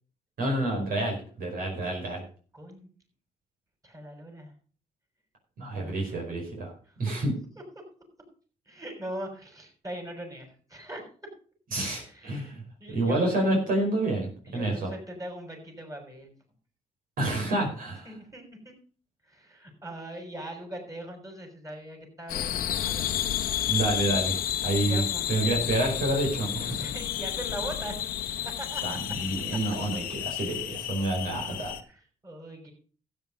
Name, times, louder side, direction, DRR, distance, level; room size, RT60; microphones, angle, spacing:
voice 1, 0.4-2.2 5.6-6.7 7.0-7.3 11.7-12.6 12.9-14.9 17.2-18.1 23.7-26.8 28.8-31.7, right 2 dB, 70° right, 1 dB, 5.0 m, -28 dB
voice 2, 2.5-2.9 3.8-4.5 5.8-6.2 6.9-7.0 8.7-11.3 11.9-13.4 14.4-16.3 18.0-18.7 19.2-23.2 24.9-25.3 26.6-28.0 28.4-29.0 31.5-31.6 31.9-32.7, right 1 dB, 20° right, 2 dB, 6.0 m, -41 dB
sound 1, 22.3-31.8, left 12 dB, 85° left, 1.0 m, -31 dB
12.5 x 9.1 x 5.2 m, 0.42 s
cardioid pair, 70°, 15 cm